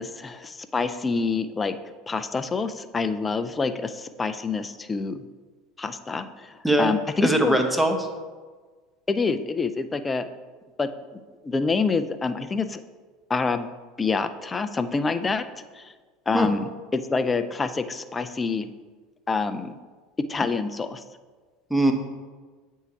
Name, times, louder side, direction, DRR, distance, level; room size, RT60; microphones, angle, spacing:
voice 1, 0.0-1.8 2.1-5.2 5.8-6.5 6.8-7.6 9.1-10.3 10.8-10.9 11.4-12.8 13.3-13.7 14.0-15.4 16.3-18.7 19.3-19.7 20.3-21.0, left 4 dB, 20° left, 11 dB, 0.4 m, -26 dB
voice 2, 7.2-8.0 16.3-16.5 21.7-21.9, right 1 dB, 5° right, 4 dB, 0.9 m, -20 dB
8.0 x 4.6 x 2.8 m, 1.4 s
hypercardioid pair, 75°, 0 cm